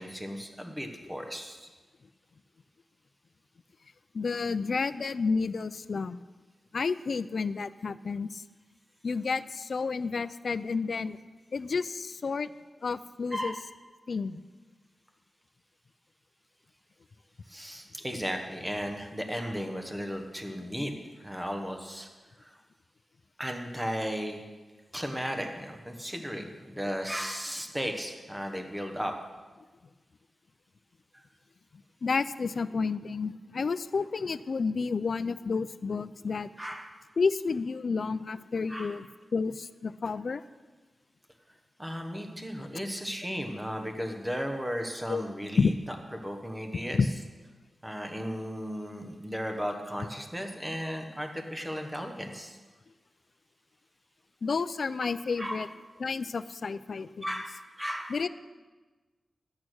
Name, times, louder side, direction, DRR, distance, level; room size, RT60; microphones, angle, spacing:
voice 1, 0.0-1.7 13.3-13.6 17.5-20.9 21.2-22.1 22.4-22.6 23.4-24.4 24.9-29.1 31.1-31.2 36.6-36.9 38.7-39.0 41.8-45.7 46.2-47.0 47.8-52.6 55.4-55.7 57.2-58.1, equal, 5° right, 4 dB, 1.1 m, -35 dB
voice 2, 4.1-6.2 6.7-8.4 9.0-11.2 11.5-12.5 12.8-13.5 14.1-14.4 32.0-36.5 37.2-39.1 39.3-40.4 45.1-45.2 45.6-45.7 46.9-47.1 54.4-55.7 56.0-57.2 58.1-58.3, left 4 dB, 50° left, 14 dB, 0.4 m, -30 dB
12.5 x 8.7 x 6.3 m, 1.3 s
wide cardioid pair, 175°, 0 cm